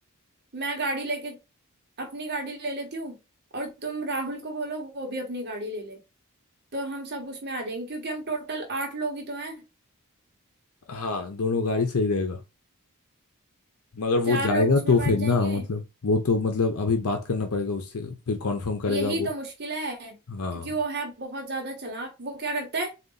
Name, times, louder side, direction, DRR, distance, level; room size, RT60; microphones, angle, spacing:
voice 1, 0.5-1.4 2.0-3.1 3.5-6.0 6.7-9.6 14.3-15.6 18.9-20.2 20.6-22.9, right 2 dB, 50° right, 1.0 m, -32 dB
voice 2, 10.9-12.4 13.9-19.3 20.3-20.7, left 3 dB, 75° left, 0.7 m, -25 dB
4.0 x 2.4 x 3.8 m
head